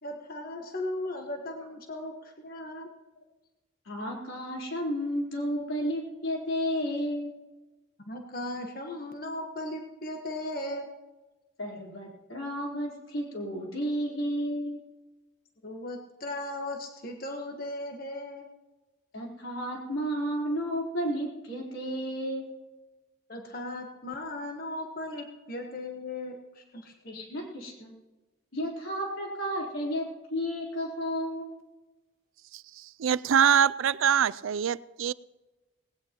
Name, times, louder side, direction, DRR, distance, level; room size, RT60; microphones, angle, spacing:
voice 1, 0.0-2.9 8.0-10.9 15.6-18.5 23.3-26.9, left 1 dB, 45° left, 3 dB, 1.3 m, -37 dB
voice 2, 3.9-7.3 11.6-14.8 19.1-22.5 27.0-27.9 28.5-31.6, equal, 85° left, -2 dB, 3.9 m, -32 dB
voice 3, 32.5-35.1, right 8 dB, 80° right, 19 dB, 0.4 m, -24 dB
19.0 x 17.5 x 3.0 m, 1.1 s
head